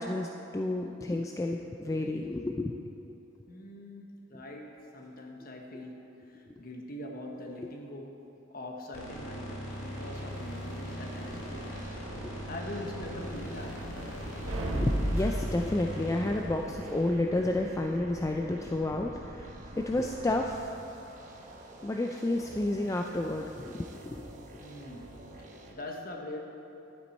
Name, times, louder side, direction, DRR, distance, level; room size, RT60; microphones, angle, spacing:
voice 1, 0.0-2.8 14.7-19.5 19.8-20.7 21.8-24.3, left 2 dB, 15° left, 2 dB, 0.3 m, -31 dB
voice 2, 3.5-8.2 8.5-11.9 12.2-13.9 24.6-26.4, left 1 dB, 45° left, 2 dB, 1.1 m, -43 dB
sound 1, 8.9-18.1, equal, 90° left, 1.9 m, -40 dB
sound 2, 9.7-25.7, right 1 dB, 40° right, 1.0 m, -49 dB
sound 3, 11.3-20.6, right 1 dB, 90° right, 1.2 m, -38 dB
12.0 x 8.5 x 4.2 m, 2.9 s
head